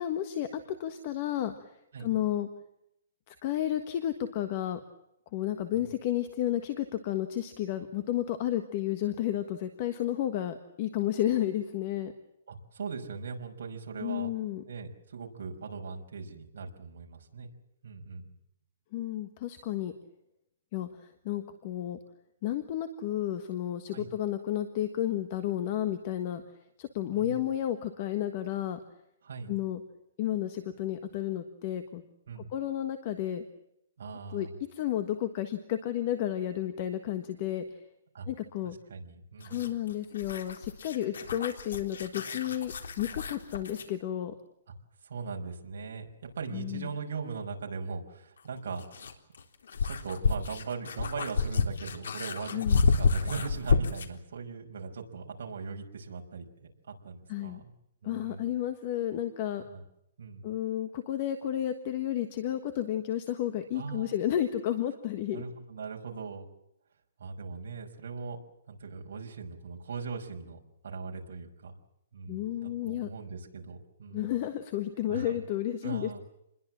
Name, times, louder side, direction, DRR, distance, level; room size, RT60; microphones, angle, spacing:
voice 1, 0.0-2.5 3.3-4.8 5.3-12.1 14.0-14.6 18.9-19.9 20.7-22.0 22.4-26.4 26.8-28.8 29.5-29.8 30.2-32.0 32.4-33.4 34.3-37.8 38.3-38.7 39.4-44.3 46.5-46.9 52.5-52.8 57.3-57.6 58.0-59.6 60.4-65.4 72.3-73.1 74.1-76.2, left 12 dB, 25° left, 10 dB, 1.4 m, -32 dB
voice 2, 12.5-14.3 14.7-17.5 17.8-18.3 23.9-24.1 27.1-27.4 29.2-29.5 32.3-32.5 34.0-34.5 38.1-38.3 38.9-39.6 45.0-48.8 49.8-57.7 58.0-58.5 59.6-59.8 60.2-60.5 63.7-64.2 65.3-66.5 67.2-68.4 68.7-71.8 72.1-74.3 75.1-75.4 75.8-76.2, right 5 dB, 55° right, 2 dB, 5.6 m, -40 dB
sound 1, 39.4-43.9 46.3-46.4 48.4-54.2, left 4 dB, 80° left, 3.7 m, -30 dB
28.0 x 21.5 x 7.5 m, 0.79 s
hypercardioid pair, 180°, 0 cm